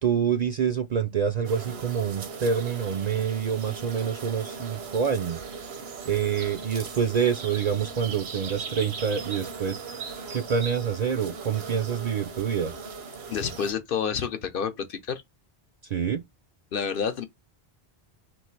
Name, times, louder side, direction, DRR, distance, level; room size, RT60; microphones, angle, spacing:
voice 1, 0.0-5.4 6.1-9.8 10.3-12.7 15.8-16.2, right 7 dB, 55° right, 0.5 m, -27 dB
sound 1, 1.4-13.7, right 5 dB, 75° right, 1.1 m, -39 dB
voice 2, 13.3-15.2 16.7-17.2, left 7 dB, 65° left, 0.8 m, -29 dB
3.1 x 3.0 x 4.4 m
omnidirectional pair, 1.1 m